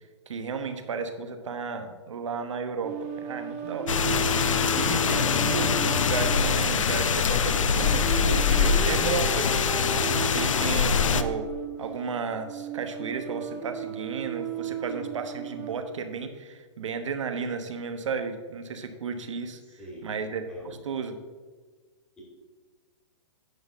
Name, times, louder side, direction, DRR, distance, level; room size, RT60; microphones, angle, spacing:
voice 1, 0.3-4.0 4.7-9.6 10.3-11.5 11.8-19.6 20.0-21.1, right 5 dB, 75° right, 7 dB, 1.1 m, -33 dB
sound 1, 2.8-15.8, right 7 dB, 10° right, 0.4 m, -35 dB
sound 2, 3.9-11.2, left 6 dB, 90° left, 0.7 m, -24 dB
voice 2, 19.6-20.1 20.5-20.8, right 2 dB, 5° left, -4 dB, 2.3 m, -45 dB
10.5 x 4.1 x 7.1 m, 1.4 s
hypercardioid pair, 170°, 16 cm